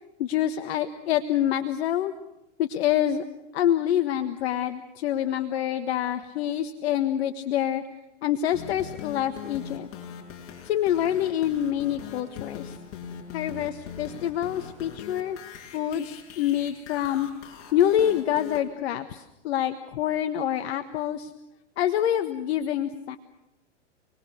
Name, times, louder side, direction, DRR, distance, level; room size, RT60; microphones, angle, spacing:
voice 1, 0.2-2.1 2.6-3.2 3.5-7.8 8.2-9.9 10.6-12.7 13.3-15.4 15.7-17.3 17.7-21.3 21.8-23.2, left 11 dB, 60° left, 8 dB, 1.5 m, -26 dB
sound 1, 8.5-18.6, left 7 dB, 40° left, 6.3 m, -42 dB
30.0 x 20.5 x 6.5 m, 0.90 s
hypercardioid pair, 115°, 35 cm